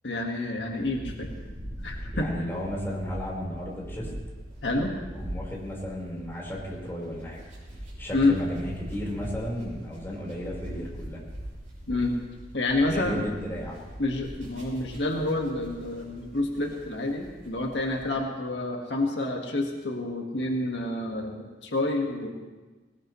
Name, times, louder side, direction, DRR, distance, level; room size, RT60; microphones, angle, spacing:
voice 1, 0.0-1.3 1.8-2.3 4.6-4.9 8.1-8.4 11.9-12.1 12.5-13.3 14.0-22.3, left 2 dB, 80° left, 1 dB, 1.7 m, -28 dB
sound 1, 0.7-18.1, equal, 45° right, 7.0 m, -41 dB
voice 2, 2.1-4.1 5.1-7.4 8.0-11.2 12.8-13.8, equal, 15° left, -4 dB, 4.4 m, -34 dB
20.0 x 19.5 x 3.2 m, 1.3 s
head